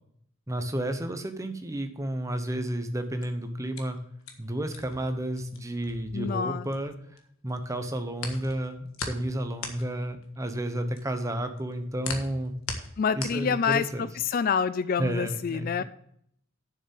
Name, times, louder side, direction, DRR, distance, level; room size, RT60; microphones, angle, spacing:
voice 1, 0.5-4.0 4.4-6.9 7.4-12.5 13.1-14.1 15.0-15.8, right 1 dB, 15° right, 7 dB, 0.9 m, -31 dB
sound 1, 3.0-7.2 7.5-14.1, left 4 dB, 75° left, 1.5 m, -40 dB
voice 2, 6.1-6.7 13.0-15.8, left 6 dB, 45° left, 15 dB, 0.3 m, -27 dB
7.4 x 6.6 x 7.0 m, 0.69 s
head